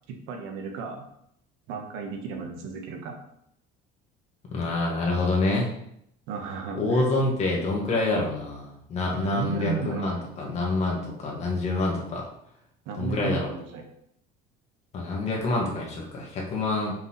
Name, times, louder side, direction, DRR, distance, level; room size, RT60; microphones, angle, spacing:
voice 1, 0.1-1.0 1.7-3.2 6.3-7.1 9.1-10.1 12.8-13.8, right 5 dB, 90° right, 3 dB, 1.2 m, -34 dB
voice 2, 4.5-5.7 6.7-12.2 13.0-13.5 14.9-16.9, left 2 dB, 35° left, -2 dB, 1.7 m, -27 dB
4.7 x 4.1 x 5.7 m, 0.75 s
cardioid pair, 160°, 19 cm